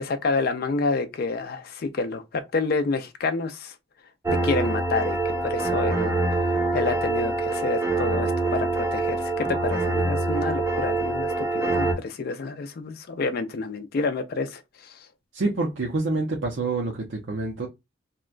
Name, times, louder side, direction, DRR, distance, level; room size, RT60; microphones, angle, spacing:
voice 1, 0.0-3.7 4.3-6.1 6.5-15.1, left 3 dB, 55° left, 0.4 m, -29 dB
sound 1, 4.2-11.9, right 2 dB, 15° right, 0.6 m, -25 dB
voice 2, 15.3-17.7, right 3 dB, 75° right, 0.6 m, -27 dB
2.9 x 2.1 x 2.3 m
head